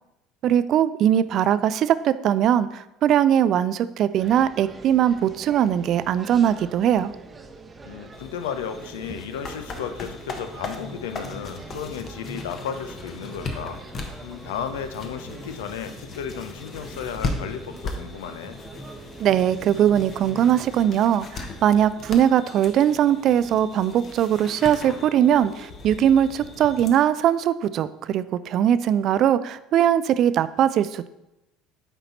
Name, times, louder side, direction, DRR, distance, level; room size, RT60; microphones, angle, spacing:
voice 1, 0.4-7.1 19.2-31.1, right 10 dB, 50° right, 14 dB, 0.3 m, -20 dB
sound 1, 4.2-20.9, right 2 dB, 20° right, 0.8 m, -43 dB
voice 2, 7.8-13.8 14.2-18.6, left 8 dB, 70° left, 9 dB, 0.5 m, -34 dB
sound 2, 8.1-26.9, left 3 dB, 40° left, 1.0 m, -38 dB
9.0 x 4.1 x 4.1 m, 0.92 s
figure-of-eight pair, 65°, 0 cm